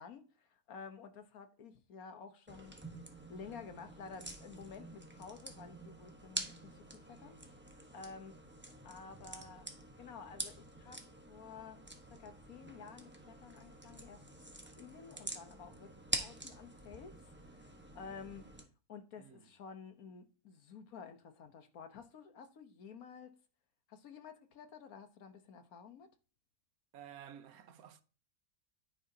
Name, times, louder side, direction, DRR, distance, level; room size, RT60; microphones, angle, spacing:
voice 1, 0.0-2.7 3.3-7.4 7.7-8.4 8.8-9.7 10.0-11.8 12.1-14.2 14.8-18.5 18.9-23.4 23.9-26.1, left 6 dB, 75° left, 1.5 m, -52 dB
sound 1, 2.5-18.6, right 1 dB, 10° right, 1.0 m, -47 dB
voice 2, 19.2-19.5 26.9-28.0, right 9 dB, 75° right, 1.3 m, -53 dB
10.0 x 9.5 x 2.8 m
omnidirectional pair, 1.5 m